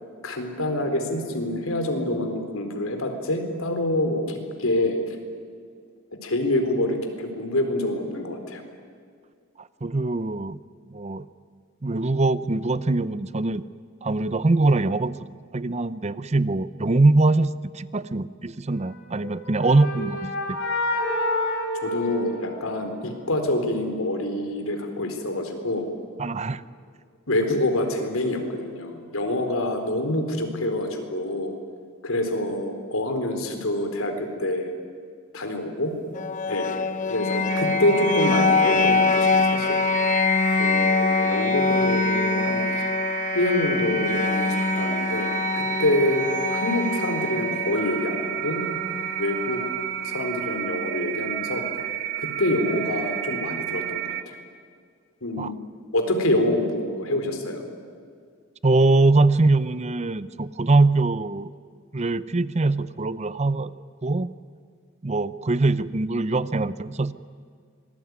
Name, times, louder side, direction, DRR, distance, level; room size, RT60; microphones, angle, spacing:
voice 1, 0.2-5.2 6.2-8.6 21.8-25.9 27.3-31.5 32.0-34.7 35.3-35.9 36.5-39.8 40.6-43.0 43.3-48.7 49.2-49.6 50.0-51.6 52.2-54.4 55.2-55.6 55.9-57.6, left 1 dB, 85° left, 5 dB, 4.1 m, -26 dB
voice 2, 9.8-10.6 10.9-11.3 11.8-13.6 14.0-15.2 15.5-20.3 26.2-26.6 55.4-55.5 58.6-61.5 61.9-63.7 64.0-64.3 65.0-67.1, right 2 dB, 30° right, 16 dB, 0.7 m, -22 dB
sound 1, 19.1-23.0, left 1 dB, 65° left, 4.6 m, -28 dB
sound 2, 36.1-50.1, left 4 dB, 40° left, 0.7 m, -24 dB
sound 3, 37.5-54.2, right 11 dB, 60° right, 1.6 m, -31 dB
25.5 x 19.5 x 9.6 m, 2.1 s
head